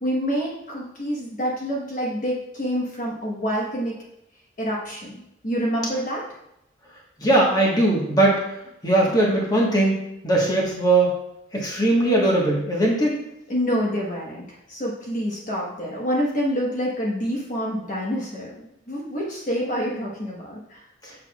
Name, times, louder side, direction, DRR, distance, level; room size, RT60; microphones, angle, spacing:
voice 1, 0.0-4.0 4.6-5.2 5.4-6.2 13.5-18.5 18.9-20.8, equal, 45° left, -3 dB, 1.2 m, -27 dB
voice 2, 7.2-8.4 8.8-10.0 10.2-11.1 11.5-13.2 21.0-21.1, right 1 dB, 20° left, -3 dB, 1.4 m, -20 dB
7.2 x 6.7 x 2.4 m, 0.82 s
head